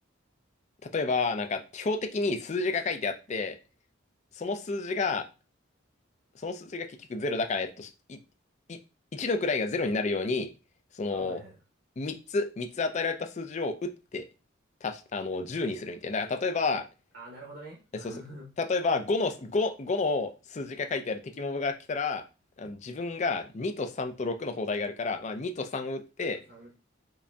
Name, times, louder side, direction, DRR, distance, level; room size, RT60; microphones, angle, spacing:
voice 1, 0.8-3.6 4.4-5.3 6.4-8.2 8.7-8.8 9.1-10.5 10.9-11.4 12.0-14.3 14.8-16.8 18.0-18.1 18.6-22.2 22.6-26.4, left 3 dB, 35° left, 7 dB, 0.4 m, -30 dB
voice 2, 11.1-11.5 17.1-18.5 26.2-26.8, right 1 dB, 60° right, -1 dB, 0.8 m, -46 dB
4.8 x 2.6 x 2.2 m, 0.31 s
head